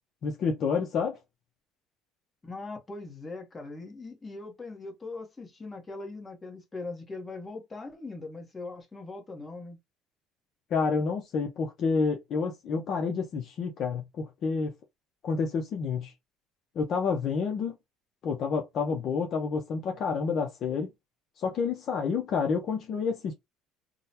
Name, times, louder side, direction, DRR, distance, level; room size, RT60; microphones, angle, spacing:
voice 1, 0.2-1.2 10.7-14.7 15.2-16.1 16.8-17.7 18.2-20.9 21.4-23.3, left 5 dB, 45° left, 0.6 m, -29 dB
voice 2, 2.4-9.8, left 3 dB, 15° left, 0.9 m, -40 dB
3.7 x 2.1 x 2.8 m
cardioid pair, 145°, 0 cm